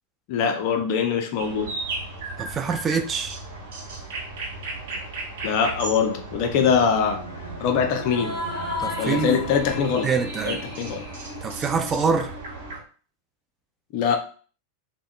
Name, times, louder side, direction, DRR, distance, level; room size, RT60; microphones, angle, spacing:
voice 1, 0.3-1.8 5.4-7.2 7.6-8.4 9.0-10.1 10.4-11.1 13.9-14.2, left 6 dB, 45° left, 0.4 m, -23 dB
sound 1, 1.4-12.8, right 2 dB, 55° right, 0.8 m, -36 dB
voice 2, 2.4-3.4 8.8-9.4 10.0-10.6 11.4-12.3, right 5 dB, 25° right, 0.3 m, -25 dB
Bowed string instrument, 6.4-10.7, right 3 dB, 85° right, 0.4 m, -40 dB
sound 2, 8.0-12.7, left 3 dB, 30° left, 1.1 m, -35 dB
3.4 x 2.1 x 2.2 m
figure-of-eight pair, 90°, 0 cm